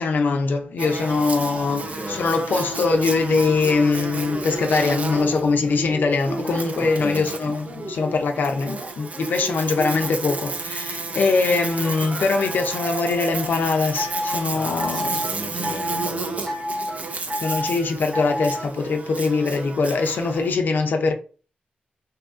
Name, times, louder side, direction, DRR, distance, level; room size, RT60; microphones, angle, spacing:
voice 1, 0.0-15.2 17.4-21.1, left 4 dB, 70° left, 0.5 m, -22 dB
Buzz, 0.8-20.6, right 3 dB, 45° right, 0.5 m, -32 dB
voice 2, 1.8-2.3 6.8-7.3 14.5-16.5, left 1 dB, 20° left, 0.6 m, -35 dB
sound 1, 4.1-7.1 7.6-10.6 11.8-13.5 14.0-14.4 14.8-15.3 15.6-16.1 16.5-17.0 17.3-17.8 18.1-18.7, equal, 25° right, 0.9 m, -31 dB
2.7 x 2.5 x 3.5 m
cardioid pair, 80°, 3 cm